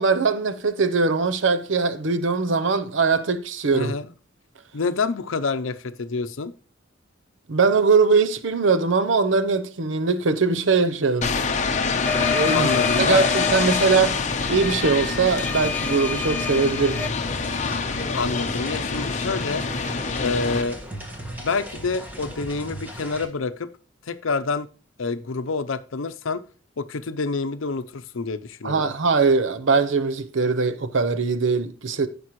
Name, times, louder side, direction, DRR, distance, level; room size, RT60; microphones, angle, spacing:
voice 1, 0.0-3.9 7.5-11.3 12.2-12.7 13.0-14.2 14.5-17.1 28.6-32.1, right 4 dB, 70° right, 0.7 m, -21 dB
voice 2, 3.7-4.1 4.7-6.5 12.5-13.2 18.1-19.6 20.2-20.8 21.4-23.7 24.1-24.7 25.0-26.4 26.8-28.9, left 4 dB, 90° left, 0.6 m, -27 dB
sound 1, 11.2-20.6, left 4 dB, 40° left, 0.8 m, -25 dB
sound 2, 12.1-17.1, left 5 dB, 10° left, 0.4 m, -30 dB
sound 3, 17.3-23.3, equal, 10° right, 1.6 m, -37 dB
15.5 x 5.3 x 3.1 m
head